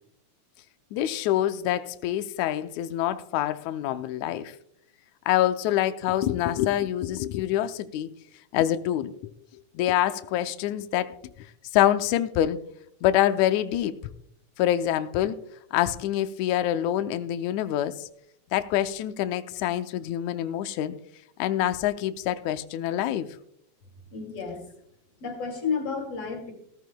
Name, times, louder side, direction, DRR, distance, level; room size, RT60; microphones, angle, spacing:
voice 1, 0.9-4.6 5.3-8.1 8.5-9.1 9.8-11.5 11.7-12.6 13.0-14.0 14.6-15.4 15.7-18.1 18.5-21.0 21.4-23.4, left 12 dB, 80° left, 2.0 m, -26 dB
voice 2, 24.1-24.6 25.2-26.5, left 5 dB, 55° left, 3.3 m, -31 dB
16.5 x 14.0 x 2.2 m
omnidirectional pair, 3.3 m